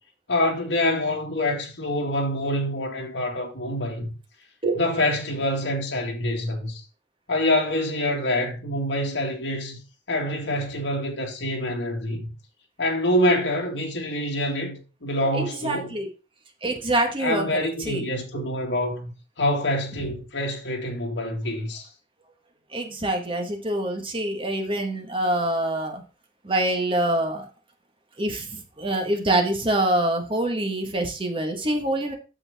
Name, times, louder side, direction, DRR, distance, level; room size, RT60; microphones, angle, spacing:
voice 1, 0.3-4.1 4.7-6.8 7.3-9.8 10.1-12.3 12.8-16.0 17.2-21.9, left 1 dB, 75° left, 2.1 m, -26 dB
voice 2, 15.3-16.1 16.6-18.0 18.3-18.4 22.7-26.0 26.4-27.4 28.2-32.1, right 1 dB, 30° right, 1.7 m, -25 dB
8.5 x 6.8 x 3.6 m
head